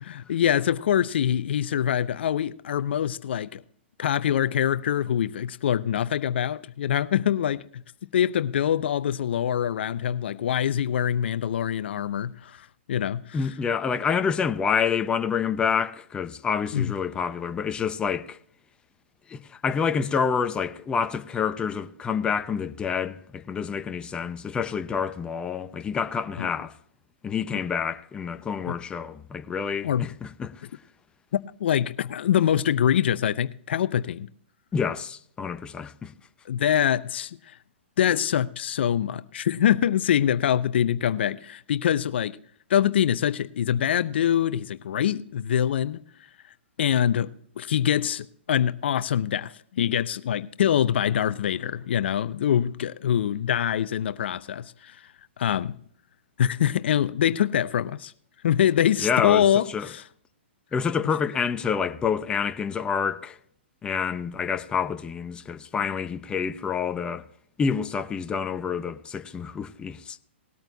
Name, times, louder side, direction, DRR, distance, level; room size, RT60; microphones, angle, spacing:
voice 1, 0.0-3.6 4.0-7.7 8.1-13.4 16.7-16.9 26.4-26.5 28.6-28.7 29.8-30.1 31.6-34.3 36.5-37.4 38.0-42.4 42.7-46.0 46.8-55.0 55.4-55.8 56.4-58.1 58.4-60.0, left 9 dB, 60° left, 0.6 m, -24 dB
voice 2, 13.3-18.4 19.3-26.7 27.2-30.5 34.7-36.1 59.0-59.9 60.7-63.4 63.8-67.2 67.6-70.2, left 6 dB, 15° left, 0.7 m, -28 dB
19.5 x 8.9 x 2.7 m
hypercardioid pair, 125°, 6 cm